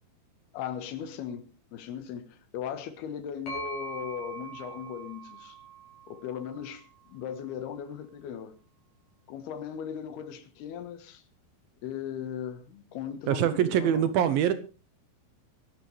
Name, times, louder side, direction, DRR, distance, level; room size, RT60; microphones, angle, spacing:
voice 1, 0.5-5.6 6.1-8.5 9.3-11.2 11.8-14.1, left 8 dB, 75° left, 3.3 m, -38 dB
sound 1, 3.5-7.2, right 4 dB, 50° left, 7.1 m, -42 dB
voice 2, 13.3-14.5, right 10 dB, 75° right, 2.4 m, -24 dB
23.0 x 12.0 x 3.3 m
omnidirectional pair, 4.7 m